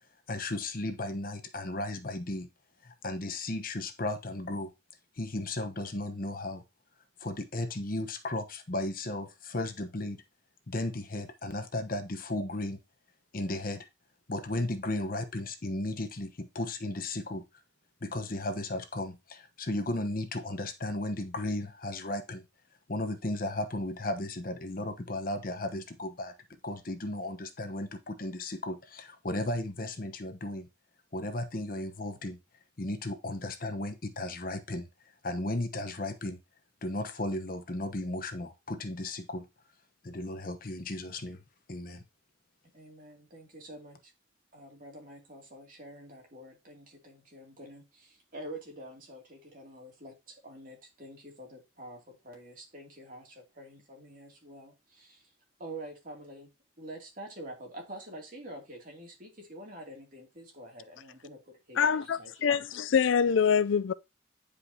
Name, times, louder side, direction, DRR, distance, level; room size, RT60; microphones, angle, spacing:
voice 1, 0.3-2.5 2.8-4.7 5.2-6.6 7.2-10.2 10.7-12.8 13.3-13.9 14.3-17.4 18.0-22.4 22.9-26.3 26.6-30.7 31.1-32.4 32.8-34.9 35.2-36.4 36.8-39.5 40.0-41.4 41.7-42.0, left 2 dB, 45° left, 1.0 m, -35 dB
voice 2, 42.7-44.1 44.5-55.3 55.6-56.5 56.8-62.6, right 1 dB, 45° right, 2.6 m, -47 dB
voice 3, 61.8-63.9, left 7 dB, 85° left, 0.4 m, -25 dB
9.8 x 5.0 x 2.8 m
head